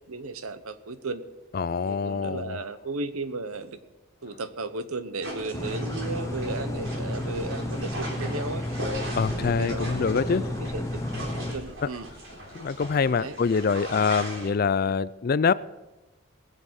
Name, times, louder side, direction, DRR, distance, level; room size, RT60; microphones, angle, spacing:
voice 1, 0.1-1.2 1.8-3.8 4.2-8.6 9.3-10.8 11.4-12.1 13.2-13.3, right 3 dB, 85° right, 1.0 m, -35 dB
voice 2, 1.5-2.6 9.2-10.5 12.5-15.5, left 5 dB, 45° left, 0.4 m, -25 dB
sound 1, 5.2-14.5, right 1 dB, 60° right, 3.9 m, -38 dB
sound 2, 5.5-11.5, left 1 dB, 15° left, 0.8 m, -32 dB
20.0 x 7.6 x 6.3 m
head